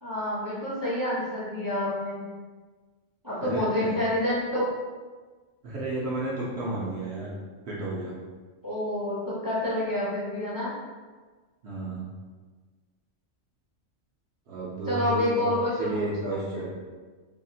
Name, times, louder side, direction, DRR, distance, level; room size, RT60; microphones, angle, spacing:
voice 1, 0.0-2.2 3.2-4.7 8.6-10.7 14.9-16.4, left 1 dB, 20° right, -9 dB, 0.6 m, -28 dB
voice 2, 3.4-4.0 5.6-7.3 7.7-8.2 11.6-12.1 14.5-15.5 15.8-16.7, right 2 dB, 60° right, -6 dB, 0.8 m, -32 dB
2.7 x 2.4 x 2.6 m, 1.4 s
omnidirectional pair, 1.3 m